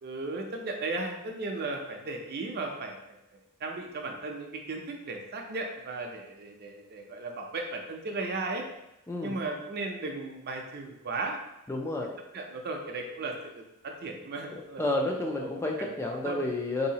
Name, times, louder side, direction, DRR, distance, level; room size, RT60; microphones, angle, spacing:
voice 1, 0.0-3.0 3.6-8.6 9.2-11.4 11.7-11.9 12.3-14.8 15.2-15.5 15.8-16.4, right 3 dB, 50° right, 2 dB, 0.5 m, -36 dB
voice 2, 11.7-12.1 14.5-16.9, left 2 dB, 10° left, 0 dB, 0.3 m, -31 dB
3.9 x 2.7 x 2.8 m, 0.89 s
head